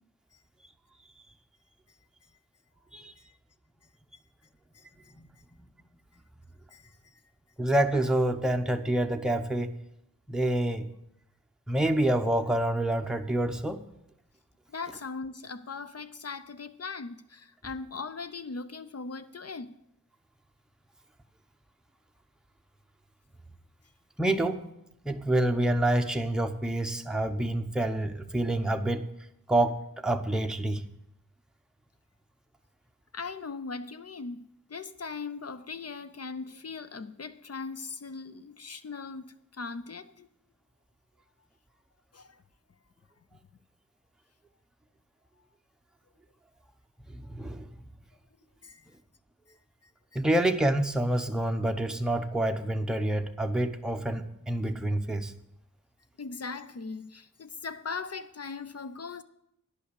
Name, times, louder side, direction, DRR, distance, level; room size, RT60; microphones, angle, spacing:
voice 1, 4.7-5.1 6.7-7.0 14.7-19.7 33.1-34.4 34.7-39.2 39.5-40.3 42.1-42.4 48.6-48.9 49.8-50.2 56.2-59.2, left 4 dB, 45° left, 0.6 m, -39 dB
voice 2, 7.6-9.8 10.3-10.9 11.7-13.8 24.2-24.7 25.0-29.1 29.5-30.8 47.1-47.7 50.1-55.3, right 1 dB, ahead, 0.7 m, -27 dB
10.0 x 5.5 x 8.1 m
wide cardioid pair, 70°, 34 cm